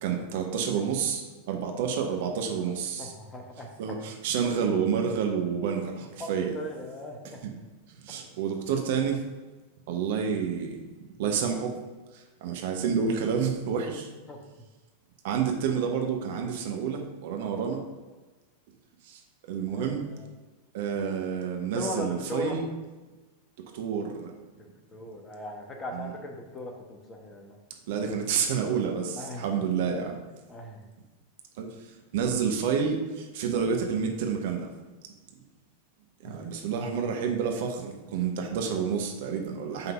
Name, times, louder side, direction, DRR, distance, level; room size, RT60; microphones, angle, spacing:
voice 1, 0.0-3.1 3.8-6.5 7.4-7.5 8.0-9.2 9.9-10.9 11.2-11.8 12.1-14.1 15.2-17.8 19.0-19.2 19.5-20.0 20.7-22.6 23.7-24.3 25.9-26.1 27.9-30.2 31.6-31.9 32.1-34.7 36.2-39.9, right 6 dB, 50° right, 3 dB, 0.8 m, -29 dB
voice 2, 3.0-4.0 6.2-7.4 14.3-14.4 19.7-20.3 21.7-22.6 24.9-27.6 29.2-29.5 30.5-30.8 36.2-36.4, left 1 dB, 20° left, 1 dB, 1.1 m, -38 dB
5.5 x 3.7 x 5.7 m, 1.2 s
figure-of-eight pair, 90°, 0 cm